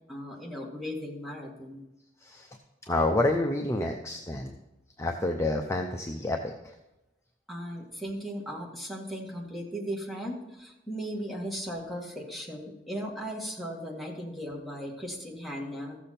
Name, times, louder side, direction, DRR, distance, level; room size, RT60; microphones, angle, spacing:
voice 1, 0.1-1.8 7.5-16.0, equal, ahead, -2 dB, 1.8 m, -37 dB
voice 2, 2.8-4.5 5.0-6.7, left 2 dB, 15° left, 2 dB, 0.6 m, -28 dB
14.5 x 7.1 x 4.3 m, 0.96 s
head